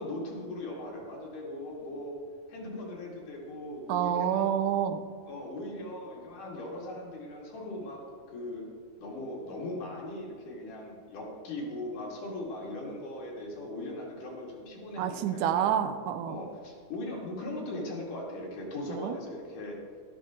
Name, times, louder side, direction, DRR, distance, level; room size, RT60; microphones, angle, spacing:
voice 1, 0.0-2.2 2.5-4.5 5.3-8.0 8.3-8.7 9.0-15.8 16.3-19.8, left 1 dB, 75° left, -3 dB, 3.8 m, -39 dB
voice 2, 3.9-5.0 15.0-16.4 18.9-19.2, right 9 dB, 80° right, 10 dB, 2.0 m, -28 dB
12.5 x 11.5 x 3.7 m, 2.1 s
omnidirectional pair, 3.7 m